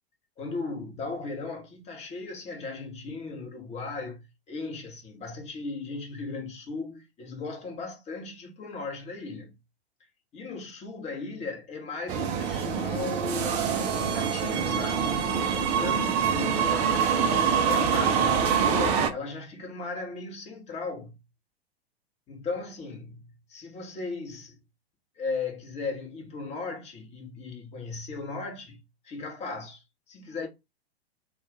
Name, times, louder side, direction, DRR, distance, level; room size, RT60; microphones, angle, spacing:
voice 1, 0.4-9.5 10.3-16.8 17.6-21.2 22.3-24.6 25.2-30.5, left 3 dB, 20° left, 1.0 m, -37 dB
sound 1, 12.1-19.1, right 7 dB, 20° right, 0.4 m, -25 dB
2.3 x 2.3 x 3.7 m
figure-of-eight pair, 100°, 32 cm